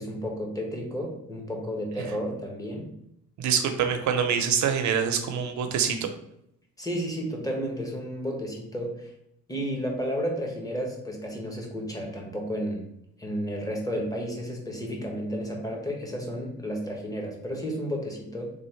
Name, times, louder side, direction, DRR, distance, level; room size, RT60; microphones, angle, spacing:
voice 1, 0.0-2.9 6.8-9.1 9.5-12.9 13.2-18.5, equal, 10° left, 0 dB, 1.1 m, -32 dB
voice 2, 3.4-6.0, right 7 dB, 70° right, 7 dB, 0.7 m, -25 dB
3.5 x 2.5 x 4.4 m, 0.77 s
cardioid pair, 90°, 30 cm